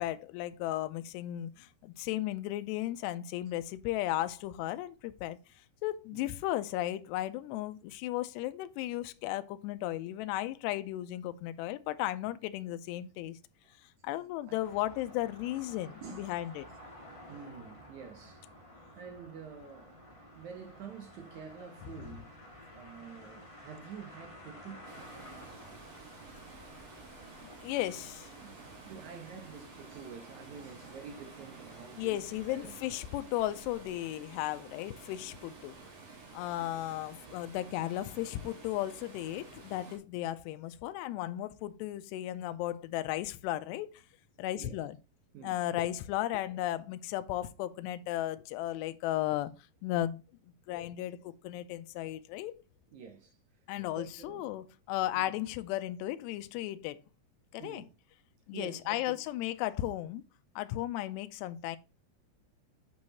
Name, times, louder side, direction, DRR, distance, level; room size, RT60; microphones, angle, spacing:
voice 1, 0.0-5.4 5.8-13.4 14.0-16.7 27.4-28.3 32.0-35.8 36.3-44.0 44.4-45.0 45.4-49.5 49.8-50.2 50.7-52.6 53.7-57.0 57.5-57.8 58.5-60.2 60.6-61.8, left 14 dB, 85° left, 2.7 m, -35 dB
sound 1, 14.6-32.8, equal, 25° left, 0.7 m, -53 dB
voice 2, 16.0-16.4 17.3-18.5 18.9-20.0 20.3-24.8 27.8-27.9 28.3-32.7 44.5-44.7 45.3-45.6 52.9-53.4 54.0-54.5 55.1-55.3 57.6-57.9 58.5-59.2, right 6 dB, 80° right, 1.7 m, -48 dB
Water, 24.8-40.0, right 4 dB, 45° right, 3.1 m, -52 dB
8.5 x 4.7 x 4.1 m
omnidirectional pair, 5.0 m